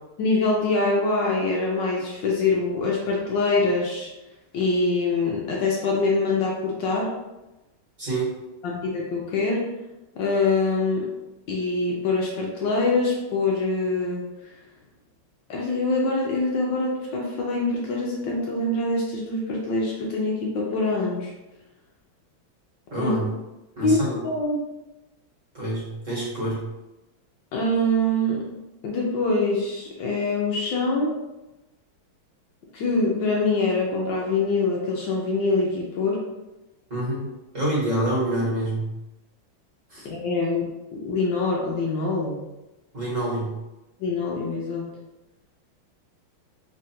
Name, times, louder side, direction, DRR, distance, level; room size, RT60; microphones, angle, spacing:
voice 1, 0.2-4.1 4.5-7.1 8.6-9.6 10.1-11.1 11.5-14.2 15.5-21.3 23.0-23.1 23.8-24.0 24.2-24.6 27.5-28.4 28.8-31.1 32.7-36.2 40.0-40.6 41.0-42.4 44.0-44.8, left 2 dB, 70° left, -2 dB, 1.3 m, -24 dB
voice 2, 8.0-8.3 22.9-23.3 23.8-24.2 25.5-26.6 36.9-37.3 37.5-38.9 39.9-40.1 42.9-43.5, right 1 dB, 40° right, -6 dB, 1.6 m, -26 dB
3.7 x 2.5 x 4.2 m, 1.0 s
omnidirectional pair, 2.3 m